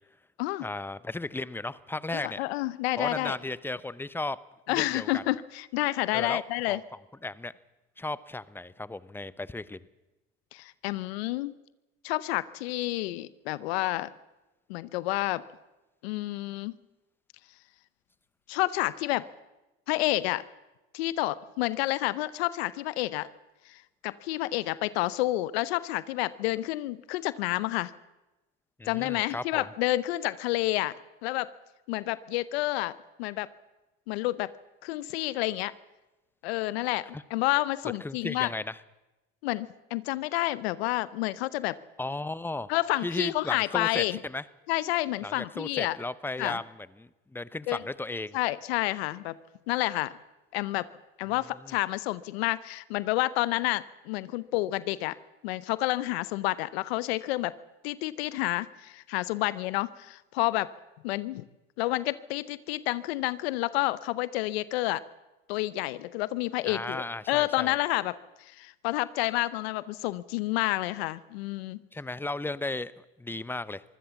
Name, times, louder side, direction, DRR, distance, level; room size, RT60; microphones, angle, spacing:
voice 1, 0.6-2.4 3.0-4.4 4.7-5.2 6.1-6.4 6.7-6.8 7.2-7.5 8.0-9.8 28.8-29.6 37.1-37.2 38.0-38.8 42.0-42.7 43.0-44.4 45.2-48.4 51.6-51.8 66.7-67.8 71.9-73.8, left 2 dB, 5° left, 17 dB, 0.8 m, -35 dB
voice 2, 2.1-3.3 4.7-6.8 10.5-11.5 12.0-14.1 14.7-15.4 16.0-16.8 18.5-19.3 19.9-20.4 20.9-23.3 23.7-27.9 28.9-30.9 31.2-31.5 31.9-33.5 34.1-34.5 34.8-35.7 36.4-38.5 39.4-41.8 42.7-44.2 44.7-46.0 46.4-46.6 47.7-47.8 48.3-49.3 49.7-50.1 50.5-50.9 51.2-55.2 55.4-57.5 57.8-60.7 61.0-61.4 61.8-65.0 65.5-71.8, left 18 dB, 90° left, 18 dB, 0.8 m, -29 dB
24.0 x 16.5 x 7.1 m, 1.0 s
supercardioid pair, 95°, 30 cm